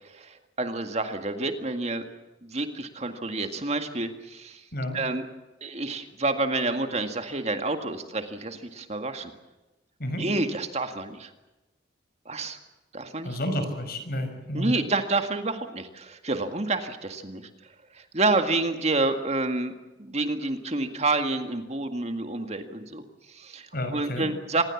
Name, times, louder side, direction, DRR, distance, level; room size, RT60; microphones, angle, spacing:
voice 1, 0.1-2.0 2.4-4.6 4.9-5.2 5.6-9.3 10.2-11.3 12.3-12.6 12.9-13.4 14.5-17.5 17.9-19.7 20.0-24.7, right 2 dB, 35° right, 7 dB, 2.0 m, -29 dB
voice 2, 13.2-14.7 23.7-24.3, equal, 50° left, 7 dB, 5.8 m, -30 dB
26.0 x 20.5 x 7.3 m, 1.1 s
head